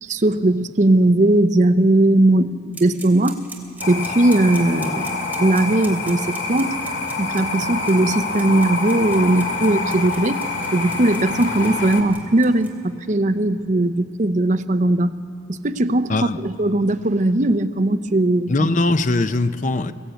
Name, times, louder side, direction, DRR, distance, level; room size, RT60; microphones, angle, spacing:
voice 1, 0.0-3.4 3.9-6.8 7.2-10.4 10.7-15.1 15.5-16.1 16.4-18.7, right 1 dB, 40° right, 10 dB, 0.7 m, -18 dB
sound 1, 2.7-12.7, right 4 dB, 10° right, 3.0 m, -39 dB
sound 2, 3.8-12.0, left 3 dB, 90° left, 2.4 m, -26 dB
voice 2, 18.5-19.9, left 2 dB, 45° left, 11 dB, 0.7 m, -20 dB
22.5 x 16.0 x 9.1 m, 2.6 s
head